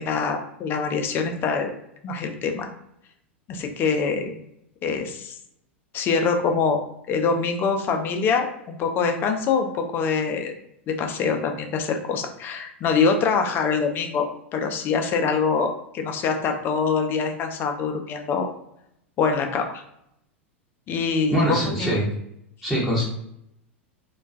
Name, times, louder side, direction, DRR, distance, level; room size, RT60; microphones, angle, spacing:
voice 1, 0.0-1.7 2.0-2.7 3.5-4.3 4.8-5.4 5.9-6.8 7.1-10.5 10.9-14.3 14.5-18.5 19.2-19.8 20.9-22.0, left 5 dB, 30° left, 4 dB, 0.4 m, -24 dB
voice 2, 21.3-22.1 22.6-23.0, equal, 5° right, -6 dB, 0.7 m, -23 dB
2.2 x 2.2 x 2.5 m, 0.77 s
figure-of-eight pair, 90°, 7 cm